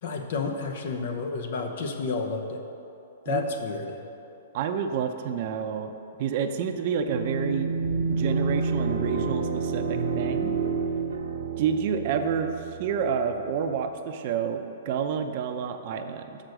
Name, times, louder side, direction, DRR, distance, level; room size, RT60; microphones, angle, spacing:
voice 1, 0.0-2.6 3.3-4.0, left 4 dB, 60° left, 4 dB, 0.9 m, -30 dB
voice 2, 4.5-5.9 6.2-7.7 8.1-10.5 11.6-12.5 12.8-16.4, right 7 dB, 50° right, 7 dB, 0.6 m, -29 dB
sound 1, 7.0-13.4, right 4 dB, 75° right, 0.9 m, -29 dB
6.6 x 6.2 x 6.5 m, 2.8 s
hypercardioid pair, 140°, 0 cm